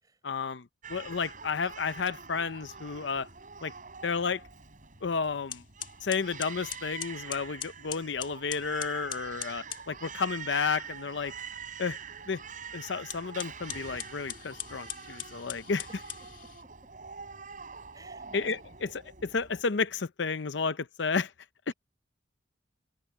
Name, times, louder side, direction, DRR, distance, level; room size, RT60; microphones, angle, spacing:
voice 1, 0.2-3.3 3.6-3.7 4.0-4.4 5.0-5.6 6.0-11.3 11.8-12.0 12.3-12.4 12.7-15.9 18.3-21.3 21.7-21.8, left 5 dB, 70° left, 0.7 m, -32 dB
Crying sobbing, 0.8-19.6, right 6 dB, 45° right, 5.6 m, -45 dB
sound 1, 5.0-5.1 5.5-9.9 13.0-16.7, left 10 dB, 45° left, 2.0 m, -42 dB
voice 2, 17.9-18.3, right 3 dB, 20° right, 4.8 m, -56 dB
head